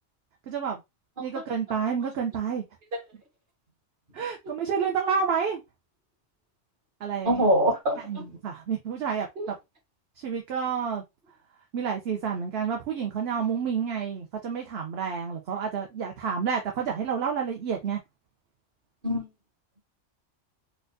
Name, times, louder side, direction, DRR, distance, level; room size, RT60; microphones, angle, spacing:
voice 1, 0.5-0.8 1.2-2.6 4.1-5.6 7.0-7.4 8.1-9.6 10.2-11.0 11.7-18.0, right 6 dB, 60° right, 0.9 m, -29 dB
voice 2, 7.2-8.2 9.4-9.5 19.0-19.3, equal, 45° right, 1.5 m, -24 dB
4.3 x 2.4 x 2.6 m
omnidirectional pair, 1.2 m